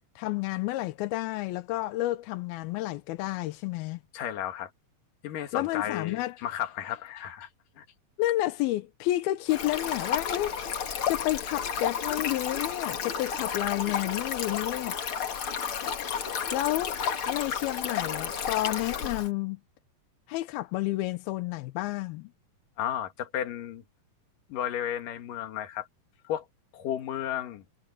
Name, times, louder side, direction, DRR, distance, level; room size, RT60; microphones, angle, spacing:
voice 1, 0.2-4.0 5.5-6.4 8.2-10.6 11.1-15.0 16.5-17.0 17.3-19.6 20.3-22.3, left 16 dB, 90° left, 2.7 m, -30 dB
voice 2, 4.1-4.7 5.2-7.5 7.8-7.9 22.8-23.8 24.5-25.9 26.2-26.5 26.7-27.6, left 10 dB, 65° left, 3.3 m, -33 dB
Stream, 9.5-19.3, left 7 dB, 50° left, 1.9 m, -32 dB
omnidirectional pair, 4.3 m